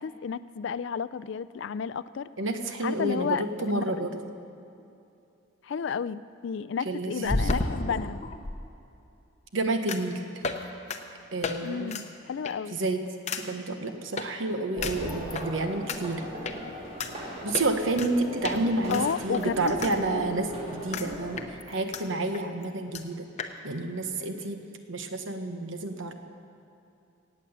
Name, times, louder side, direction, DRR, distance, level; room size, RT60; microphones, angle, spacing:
voice 1, 0.0-2.3 2.8-4.1 5.6-8.2 11.6-12.8 18.9-20.5, left 6 dB, 60° left, 15 dB, 0.3 m, -32 dB
voice 2, 2.4-4.3 6.8-7.7 9.5-10.5 11.3-12.0 12.7-13.0 13.3-16.2 17.4-23.2 23.6-24.6 24.9-26.1, right 2 dB, 70° right, 6 dB, 1.1 m, -30 dB
sound 1, 4.8-4.9 7.3-8.6 9.9-10.1 10.4-10.6 10.9-11.0 11.4-11.6 11.9-12.0 12.4-12.7 13.3-13.4 14.2-14.3 14.8-15.5 15.9-16.0 16.4-16.6 17.0-17.1 17.5-18.1 18.4-18.6 18.9-19.9 20.2-20.3 20.9-21.1 21.4-22.0 22.3-22.4 22.6-22.7 22.9-23.0 23.4-23.5, left 3 dB, 35° left, 0.7 m, -31 dB
sound 2, 14.7-21.4, right 1 dB, 30° right, 2.5 m, -38 dB
17.5 x 8.5 x 7.1 m, 2.7 s
head